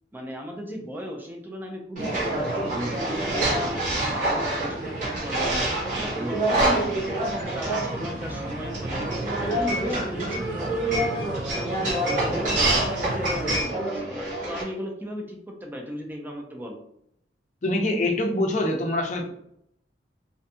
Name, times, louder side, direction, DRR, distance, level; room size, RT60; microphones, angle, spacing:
voice 1, 0.1-7.2 7.5-9.1 9.4-12.4 12.8-16.8, equal, 10° right, 1 dB, 0.4 m, -37 dB
sound 1, 2.0-14.6, right 1 dB, 50° right, 1.0 m, -26 dB
sound 2, 2.0-13.6, right 2 dB, 70° right, 0.4 m, -37 dB
voice 2, 17.6-19.3, left 1 dB, 45° left, 2 dB, 0.5 m, -24 dB
2.5 x 2.2 x 2.6 m, 0.72 s
head